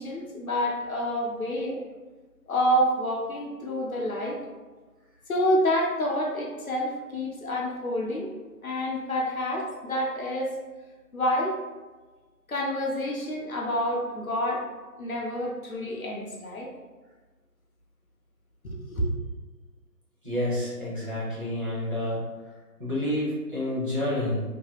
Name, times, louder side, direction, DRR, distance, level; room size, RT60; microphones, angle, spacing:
voice 1, 0.0-1.8 2.5-4.4 5.3-8.3 8.6-10.5 11.1-11.6 12.5-14.6 15.0-16.7 18.6-19.1, equal, 60° left, -2 dB, 0.6 m, -28 dB
voice 2, 20.2-22.2 22.8-24.4, left 1 dB, 35° right, -9 dB, 0.8 m, -29 dB
2.8 x 2.6 x 2.3 m, 1.3 s
figure-of-eight pair, 155°, 48 cm